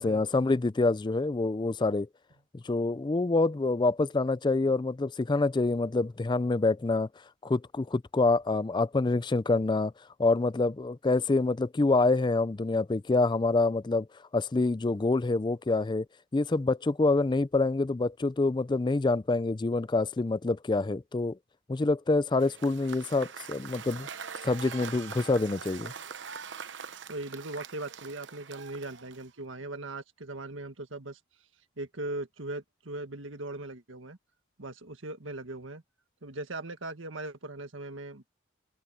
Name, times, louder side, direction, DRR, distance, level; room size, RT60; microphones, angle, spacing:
voice 1, 0.0-2.1 2.5-7.1 7.4-9.9 10.2-14.1 14.3-16.1 16.3-21.4 21.7-24.1 24.4-25.9, left 3 dB, 25° left, 0.4 m, -26 dB
Cheering / Applause / Crowd, 22.3-29.4, right 6 dB, 65° right, 0.9 m, -43 dB
voice 2, 27.1-31.2 31.8-34.2 34.6-35.8 36.2-38.2, right 2 dB, 85° right, 1.7 m, -39 dB
head